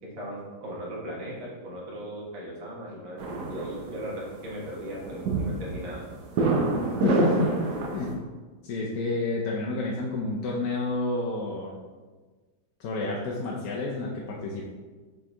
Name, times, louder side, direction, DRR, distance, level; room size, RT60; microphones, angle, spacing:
voice 1, 0.0-3.2 3.5-6.0, equal, 90° right, -4 dB, 2.3 m, -38 dB
sound 1, 3.2-8.1, right 2 dB, 65° right, 1.3 m, -28 dB
voice 2, 7.0-7.6 7.9-8.1 8.6-11.8 12.8-14.6, left 2 dB, 60° left, -3 dB, 1.0 m, -29 dB
6.5 x 4.3 x 3.4 m, 1.3 s
omnidirectional pair, 2.1 m